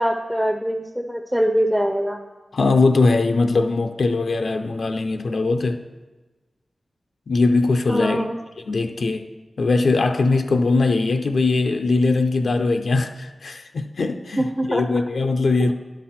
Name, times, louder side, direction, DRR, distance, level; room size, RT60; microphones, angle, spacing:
voice 1, 0.0-2.2 7.9-8.4 14.4-15.0, equal, 5° right, 3 dB, 0.5 m, -23 dB
voice 2, 2.5-5.8 7.3-8.3 8.6-9.3 9.6-15.7, left 3 dB, 70° left, 6 dB, 0.5 m, -20 dB
10.5 x 6.0 x 4.2 m, 1.2 s
wide cardioid pair, 110°, 0 cm